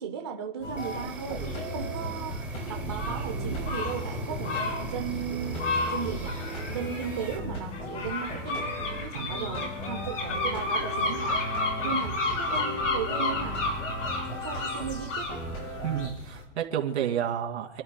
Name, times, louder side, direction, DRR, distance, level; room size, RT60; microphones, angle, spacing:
voice 1, 0.0-11.4 11.8-13.6 14.4-15.5, right 8 dB, 20° right, 2 dB, 0.5 m, -36 dB
sound 1, 0.6-16.4, left 2 dB, 80° left, 4.7 m, -33 dB
sound 2, 0.6-16.1, right 1 dB, 15° left, 1.8 m, -37 dB
Insect, 0.8-7.4, right 5 dB, 5° right, 0.8 m, -45 dB
voice 2, 9.1-9.5 15.8-17.8, right 9 dB, 60° right, 2 dB, 2.4 m, -31 dB
28.5 x 12.5 x 2.2 m, 1.0 s
hypercardioid pair, 175°, 37 cm